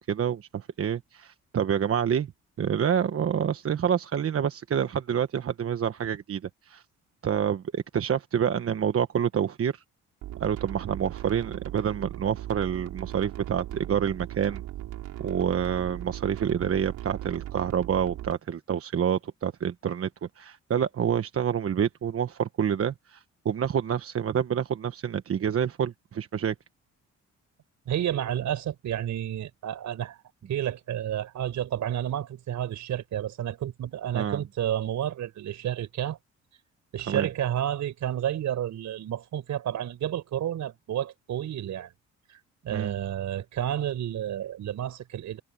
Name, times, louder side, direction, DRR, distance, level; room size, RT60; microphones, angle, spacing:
voice 1, 0.0-2.3 2.6-6.4 6.7-6.8 7.2-9.8 10.4-14.6 15.2-20.1 20.4-26.5 34.1-34.4 37.1-37.3 42.7-42.9, right 8 dB, 50° right, 1.3 m, -27 dB
sound 1, 10.2-18.3, right 14 dB, 90° right, 6.9 m, -38 dB
voice 2, 27.9-30.2 30.5-36.2 36.9-41.9 42.3-42.4 42.6-45.4, right 11 dB, 70° right, 5.1 m, -30 dB
cardioid pair, 90°, 30 cm